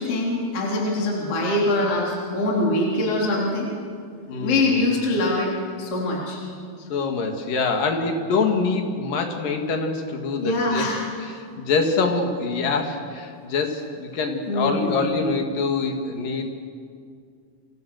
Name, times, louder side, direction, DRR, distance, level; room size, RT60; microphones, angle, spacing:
voice 1, 0.0-3.7 4.4-5.5 5.8-6.4 10.4-11.1 14.5-15.0, left 2 dB, 35° left, -3 dB, 4.4 m, -23 dB
voice 2, 4.3-4.8 6.9-10.9 11.2-16.5, left 4 dB, 60° left, 4 dB, 3.8 m, -25 dB
29.5 x 26.5 x 6.6 m, 2.3 s
omnidirectional pair, 4.6 m